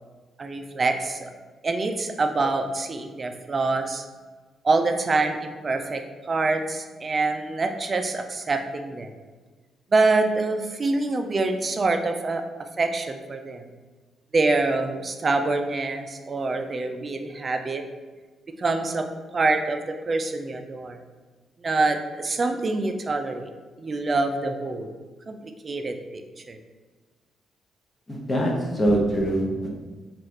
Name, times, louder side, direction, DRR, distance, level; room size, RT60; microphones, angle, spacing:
voice 1, 0.4-1.3 1.6-4.0 4.6-6.0 6.3-9.1 9.9-12.4 12.8-13.6 14.3-17.8 18.6-19.1 19.3-21.0 21.6-23.5 23.8-24.9 25.3-25.4 25.6-26.2 26.5-26.6, right 3 dB, 30° right, 6 dB, 0.3 m, -25 dB
voice 2, 28.1-29.7, right 1 dB, 20° left, -2 dB, 0.7 m, -23 dB
3.1 x 2.3 x 4.2 m, 1.4 s
cardioid pair, 115°, 0 cm